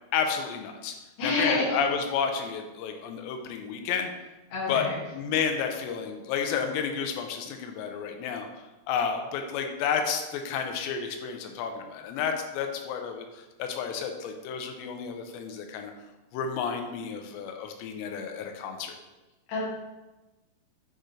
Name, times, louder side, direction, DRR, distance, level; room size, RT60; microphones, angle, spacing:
voice 1, 0.1-0.9 1.2-4.1 4.7-4.9 5.1-8.5 8.9-15.9 16.3-19.0, left 6 dB, 80° left, 5 dB, 2.8 m, -31 dB
voice 2, 1.2-1.8 4.5-5.0 19.5-19.6, left 3 dB, 50° left, -7 dB, 2.7 m, -27 dB
9.0 x 3.8 x 3.2 m, 1.1 s
omnidirectional pair, 5.1 m